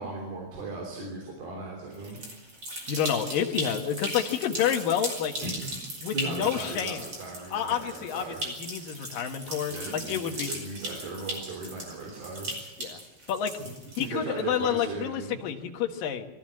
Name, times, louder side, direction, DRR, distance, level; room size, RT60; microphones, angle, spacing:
voice 1, 0.0-2.2 5.4-8.4 9.7-12.5 13.6-15.4, right 3 dB, 70° right, 0 dB, 5.3 m, -38 dB
sound 1, 1.9-14.4, right 1 dB, 30° right, 5.8 m, -38 dB
voice 2, 2.9-5.3 6.0-7.0 7.5-10.5 12.8-13.0 13.3-13.5 14.0-16.3, left 9 dB, 65° left, 3 dB, 3.0 m, -29 dB
23.5 x 16.0 x 7.6 m, 1.1 s
omnidirectional pair, 4.5 m